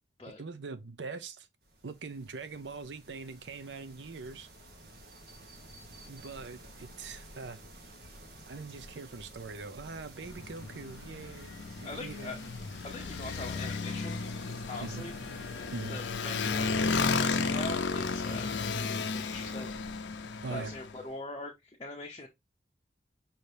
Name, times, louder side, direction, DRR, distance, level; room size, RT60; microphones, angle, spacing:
voice 1, 0.4-1.5 1.8-4.5 6.1-7.6 8.5-12.4 14.8-15.0 15.7-16.0 20.4-20.7, right 4 dB, 80° right, 0.6 m, -42 dB
sound 1, 1.6-17.0, right 1 dB, 60° right, 1.1 m, -51 dB
Motorcycle, 10.2-20.9, left 4 dB, 90° left, 0.5 m, -33 dB
voice 2, 11.8-12.4 12.8-14.2 14.7-15.1 15.6-19.8 20.5-22.3, left 2 dB, 30° left, 0.7 m, -42 dB
5.7 x 2.8 x 3.2 m
head